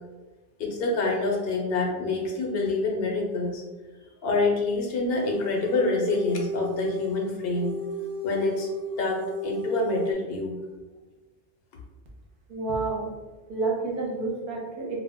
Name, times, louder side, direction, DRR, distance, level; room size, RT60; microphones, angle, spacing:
voice 1, 0.6-3.6 4.2-7.7 8.2-8.7 9.0-10.5, left 3 dB, 70° left, 0 dB, 0.8 m, -27 dB
sound 1, 5.1-10.1, equal, 30° right, 0.3 m, -33 dB
voice 2, 12.5-13.1 13.5-15.0, right 3 dB, 60° right, -1 dB, 0.8 m, -29 dB
2.1 x 2.1 x 3.4 m, 1.2 s
omnidirectional pair, 1.1 m